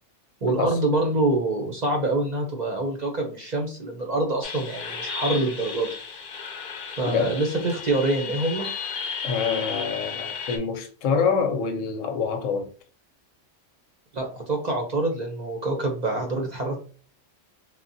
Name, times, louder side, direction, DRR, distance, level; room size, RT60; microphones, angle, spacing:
voice 1, 0.4-5.9 7.0-8.7 14.1-16.8, right 2 dB, 50° right, 0.5 m, -25 dB
sound 1, 4.4-10.6, left 5 dB, 55° left, 0.6 m, -34 dB
voice 2, 7.0-7.3 9.2-12.7, left 6 dB, 90° left, 1.0 m, -26 dB
3.4 x 2.2 x 2.6 m
omnidirectional pair, 1.3 m